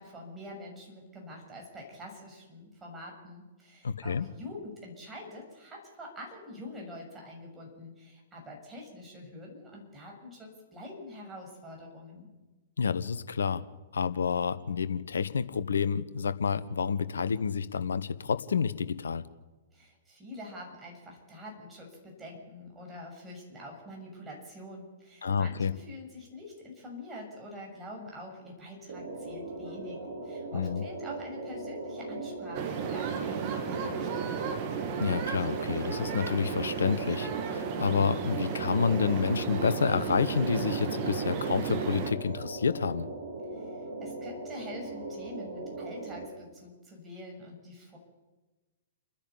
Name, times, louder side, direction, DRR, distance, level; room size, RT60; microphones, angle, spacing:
voice 1, 0.0-12.3 19.7-34.4 43.5-48.0, left 1 dB, 15° right, -1 dB, 6.9 m, -45 dB
voice 2, 3.8-4.3 12.8-13.6 13.9-19.3 25.2-25.8 30.5-30.8 35.0-43.1, left 6 dB, 70° left, 13 dB, 1.1 m, -29 dB
sound 1, 28.9-46.3, right 2 dB, 55° right, 5.0 m, -39 dB
sound 2, 32.5-42.1, right 7 dB, 40° right, 2.4 m, -34 dB
29.5 x 10.5 x 8.6 m, 1.2 s
figure-of-eight pair, 110°, 0 cm